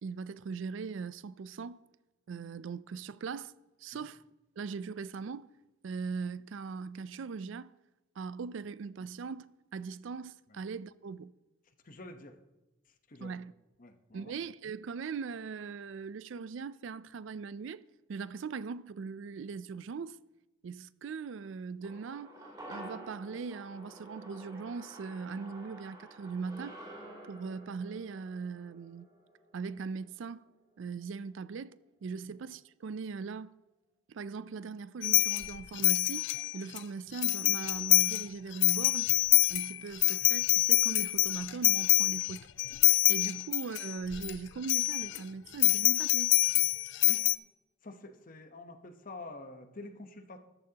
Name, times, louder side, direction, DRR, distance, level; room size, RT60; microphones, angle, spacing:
voice 1, 0.0-1.8 2.3-3.5 3.8-4.3 4.6-5.5 5.8-7.7 8.2-11.3 13.2-13.5 14.1-17.8 18.1-20.2 20.6-22.3 22.7-26.8 27.3-29.1 29.5-30.5 30.8-33.5 34.1-39.1 39.5-42.5 43.1-46.4, right 5 dB, 65° right, 0.4 m, -40 dB
voice 2, 11.8-12.4 13.1-13.4 13.8-14.3 32.2-32.3 42.1-42.2 47.1-47.2 47.8-50.4, left 2 dB, 40° left, 0.9 m, -47 dB
sound 1, 21.8-30.3 30.6-30.7, right 1 dB, 20° right, 3.2 m, -50 dB
sound 2, 35.0-36.8 37.2-38.3 38.5-44.3 44.6-45.2 45.6-47.4, left 19 dB, 60° left, 0.3 m, -26 dB
14.0 x 13.5 x 2.9 m
head